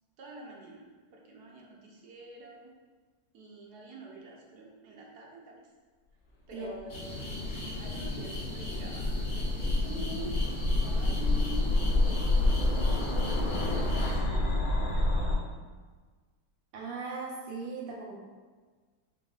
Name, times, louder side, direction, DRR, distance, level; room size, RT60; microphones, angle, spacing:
voice 1, 0.2-0.8 1.1-2.7 3.3-5.6 6.5-10.4 10.8-13.1 13.8-15.4, right 2 dB, 65° right, -2 dB, 1.1 m, -46 dB
sound 1, 6.9-14.2, left 2 dB, 55° left, 0.8 m, -39 dB
sound 2, 7.1-15.3, left 2 dB, 75° left, 1.4 m, -28 dB
voice 2, 16.7-18.1, right 4 dB, 80° right, -4 dB, 0.5 m, -38 dB
4.9 x 3.8 x 2.4 m, 1.4 s
omnidirectional pair, 2.2 m